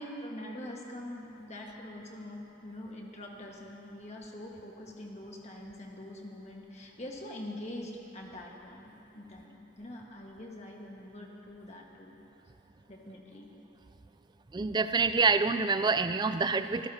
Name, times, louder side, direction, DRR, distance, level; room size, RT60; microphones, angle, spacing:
voice 1, 0.0-12.2 12.9-13.5, left 1 dB, 30° left, -1 dB, 1.5 m, -44 dB
voice 2, 14.5-16.9, right 4 dB, 20° right, 10 dB, 0.3 m, -26 dB
25.5 x 14.5 x 2.8 m, 3.0 s
head